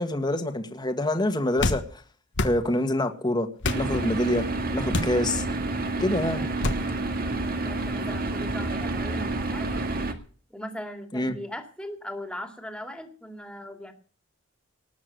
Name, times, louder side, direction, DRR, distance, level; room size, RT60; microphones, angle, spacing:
voice 1, 0.0-2.0 2.4-3.5 3.7-4.4 4.7-5.4 6.0-6.4 11.1-11.3, left 1 dB, 20° left, 6 dB, 1.7 m, -26 dB
sound 1, 1.6-1.8 2.3-2.6 3.6-3.9 4.9-5.2 6.6-6.8, left 2 dB, 60° left, 1.4 m, -26 dB
sound 2, 3.6-10.1, right 2 dB, 45° right, 1.9 m, -29 dB
voice 2, 6.2-9.7 10.5-13.9, equal, 5° left, 6 dB, 2.5 m, -40 dB
19.5 x 7.3 x 7.9 m, 0.43 s
head